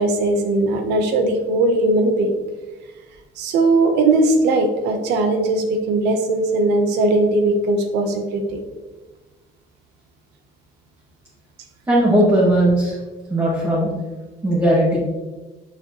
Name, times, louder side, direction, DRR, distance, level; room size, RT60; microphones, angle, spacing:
voice 1, 0.0-2.3 3.4-8.6, right 2 dB, 85° right, 5 dB, 1.0 m, -19 dB
voice 2, 11.9-13.0 13.3-13.9 14.4-15.0, right 1 dB, 15° right, -7 dB, 1.9 m, -17 dB
6.0 x 6.0 x 3.0 m, 1.2 s
cardioid pair, 110°, 17 cm